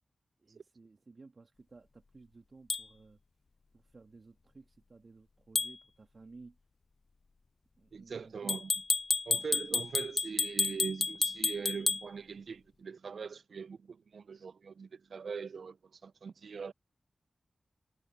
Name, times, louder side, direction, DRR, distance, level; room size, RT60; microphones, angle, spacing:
voice 1, 0.4-3.2 3.7-6.6 7.8-8.6, right 3 dB, 60° right, 1.6 m, -56 dB
sound 1, 2.7-2.8 5.6-5.8 8.5-12.0, left 4 dB, 60° left, 0.3 m, -31 dB
voice 2, 7.9-8.7 9.3-16.7, right 5 dB, 80° right, 0.3 m, -41 dB
cardioid pair, 40°, 0 cm